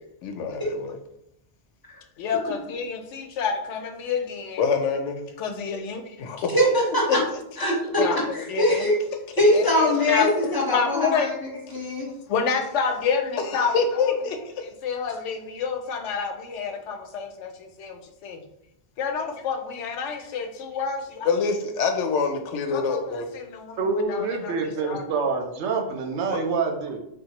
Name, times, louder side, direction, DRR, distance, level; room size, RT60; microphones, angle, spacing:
voice 1, 0.2-1.0 2.2-6.5 7.1-7.2 8.0-8.9 9.5-11.3 12.1-18.4 19.0-25.0, left 5 dB, 80° left, 5 dB, 0.9 m, -28 dB
voice 2, 6.5-7.2 7.6-8.9 9.4-12.1, left 1 dB, 25° left, -3 dB, 0.7 m, -22 dB
voice 3, 23.8-27.0, right 4 dB, 75° right, 2 dB, 0.9 m, -26 dB
3.5 x 2.6 x 2.9 m, 0.78 s
omnidirectional pair, 1.2 m